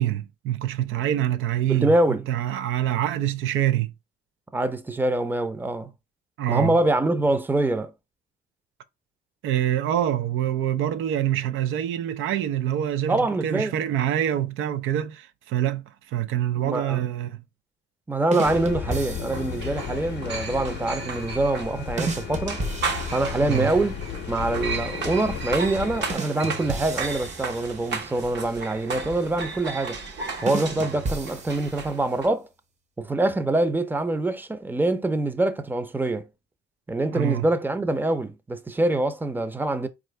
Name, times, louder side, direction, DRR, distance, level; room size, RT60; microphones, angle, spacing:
voice 1, 0.0-1.9 2.3-3.9 6.4-6.8 9.4-17.4 23.5-23.7 37.1-37.5, right 11 dB, 85° right, 0.5 m, -25 dB
voice 2, 1.7-2.3 4.5-5.9 6.5-7.9 13.1-13.8 16.6-17.0 18.1-22.6 23.1-24.0 24.3-30.0 30.4-32.5 33.0-36.3 36.9-39.9, right 2 dB, 10° right, 0.5 m, -25 dB
sound 1, 18.3-19.7 22.0-23.9 26.1-28.2 30.5-32.1, right 3 dB, 35° right, 0.8 m, -33 dB
sound 2, 18.4-26.1, left 9 dB, 60° left, 0.6 m, -34 dB
sound 3, 18.4-32.3, right 4 dB, 60° right, 1.1 m, -35 dB
4.3 x 2.5 x 3.2 m
cardioid pair, 90°, 20 cm